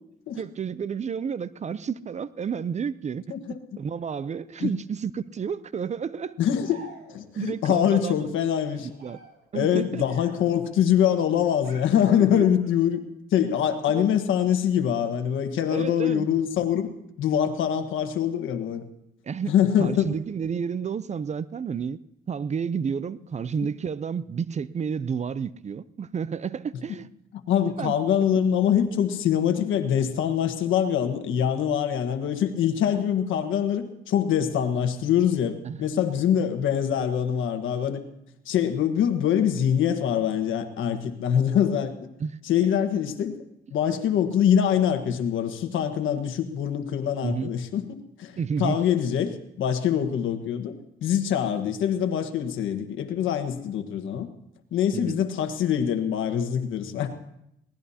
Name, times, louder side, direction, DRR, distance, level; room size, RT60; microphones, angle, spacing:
voice 1, 0.3-3.3 3.8-6.4 7.3-8.2 8.8-9.2 9.5-10.0 12.2-12.4 13.9-14.1 15.7-16.3 19.3-22.0 22.3-27.1 27.8-27.9 35.6-35.8 42.2-42.4 47.2-47.5 48.4-48.8 54.9-55.2, right 6 dB, 35° right, 17 dB, 0.5 m, -31 dB
voice 2, 6.4-6.8 7.1-8.9 9.5-13.0 13.3-16.9 17.2-18.8 19.5-20.1 27.5-38.0 38.5-41.9 42.4-43.4 43.7-47.8 48.2-50.7 51.0-54.3 54.7-57.1, left 9 dB, 80° left, 7 dB, 1.4 m, -24 dB
sound 1, 6.6-7.4 8.6-10.6 11.6-12.7, right 2 dB, 60° right, 7.2 m, -49 dB
22.5 x 18.0 x 2.8 m, 0.79 s
cardioid pair, 90°, 20 cm